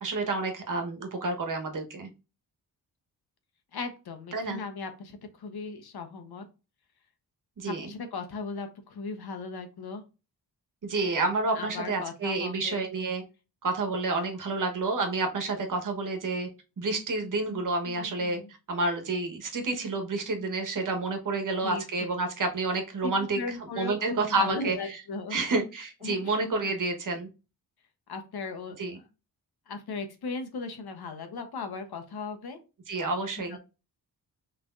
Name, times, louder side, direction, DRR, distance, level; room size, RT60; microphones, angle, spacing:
voice 1, 0.0-2.1 4.3-4.6 7.6-7.9 10.8-13.2 13.6-16.5 16.8-18.4 18.7-25.0 25.3-27.3 28.8-29.0 32.9-33.6, right 3 dB, 55° right, 4 dB, 1.3 m, -29 dB
voice 2, 3.7-6.4 7.6-10.0 11.5-12.9 17.9-18.5 21.6-21.8 23.0-25.4 26.0-26.3 28.1-28.8 29.7-32.6 33.5-33.6, left 4 dB, 75° left, 7 dB, 1.2 m, -37 dB
6.0 x 3.4 x 2.6 m, 0.30 s
wide cardioid pair, 145°, 38 cm